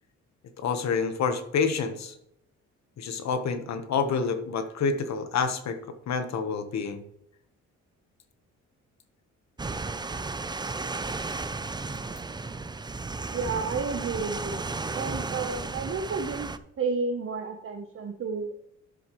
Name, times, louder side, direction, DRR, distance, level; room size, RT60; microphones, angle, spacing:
voice 1, 0.6-2.1 3.0-5.8 6.1-7.0, left 5 dB, 65° left, 9 dB, 1.3 m, -28 dB
sound 1, 9.6-16.6, right 3 dB, 15° right, 0.5 m, -34 dB
voice 2, 13.3-14.6 14.9-16.5 16.8-18.5, right 4 dB, 45° right, 3 dB, 1.0 m, -31 dB
10.5 x 7.6 x 3.1 m, 0.77 s
cardioid pair, 90°, 30 cm